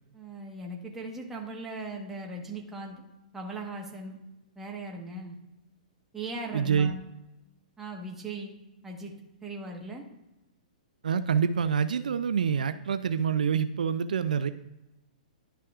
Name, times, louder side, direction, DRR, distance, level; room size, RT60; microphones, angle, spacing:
voice 1, 0.1-3.0 3.3-4.2 4.5-5.4 6.1-7.0 7.8-8.6 8.8-9.1 9.4-10.0, right 2 dB, 10° right, 0 dB, 1.3 m, -38 dB
voice 2, 6.5-6.9 11.0-14.5, right 7 dB, 80° right, 11 dB, 0.4 m, -26 dB
11.0 x 5.7 x 2.4 m, 0.95 s
hypercardioid pair, 135°, 4 cm